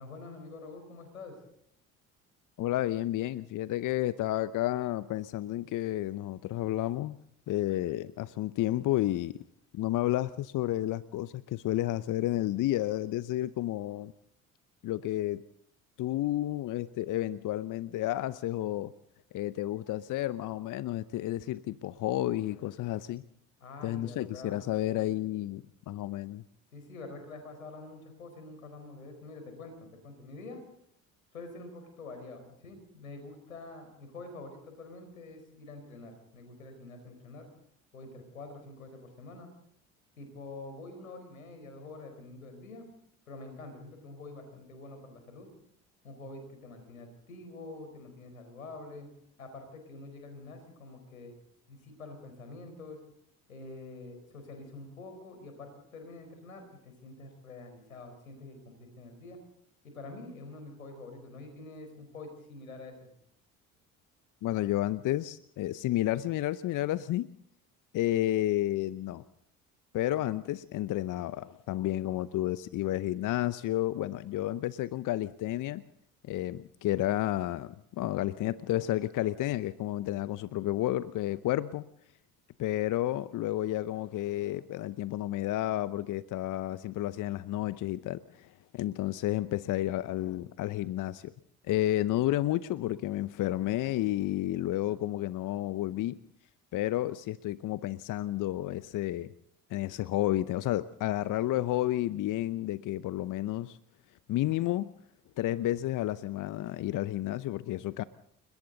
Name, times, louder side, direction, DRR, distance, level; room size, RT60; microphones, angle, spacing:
voice 1, 0.0-1.4 23.6-24.6 26.7-30.6 31.3-37.5 37.9-39.5 40.2-42.9 43.3-45.5 46.0-49.1 49.4-51.3 51.7-53.0 53.5-59.4 59.8-63.1, left 2 dB, 90° left, 6 dB, 4.6 m, -46 dB
voice 2, 2.6-7.2 7.5-9.4 9.7-14.1 14.8-15.4 16.0-18.9 19.3-23.2 23.8-26.4 64.4-67.3 67.9-69.2 69.9-75.8 76.3-81.9 82.6-91.3 91.7-96.2 96.7-99.3 99.7-103.8 104.3-104.9 105.4-108.0, left 14 dB, 50° left, 17 dB, 0.8 m, -31 dB
30.0 x 21.5 x 4.0 m, 0.73 s
figure-of-eight pair, 55°, 40 cm